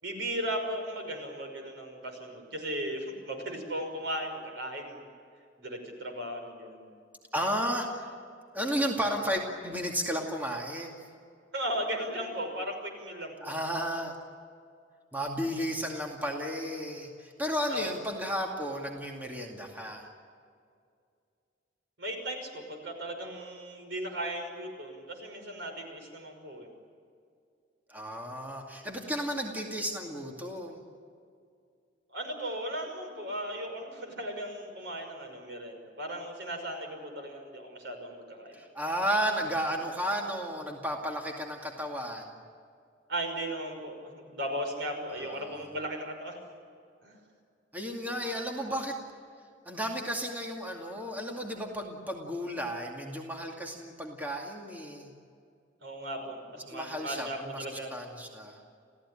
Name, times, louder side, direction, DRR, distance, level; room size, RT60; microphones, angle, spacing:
voice 1, 0.0-5.0 5.6-6.9 11.5-13.3 17.7-17.9 22.0-26.7 32.1-38.6 43.1-46.3 47.0-47.2 55.8-58.0, right 1 dB, 70° right, 4 dB, 5.8 m, -36 dB
voice 2, 7.3-8.1 8.5-11.0 13.4-14.1 15.1-20.1 27.9-30.8 38.5-42.3 45.3-45.5 47.7-49.0 49.7-55.1 56.7-57.6 57.9-58.6, equal, 10° right, 0 dB, 2.4 m, -33 dB
28.0 x 16.5 x 10.0 m, 2.3 s
head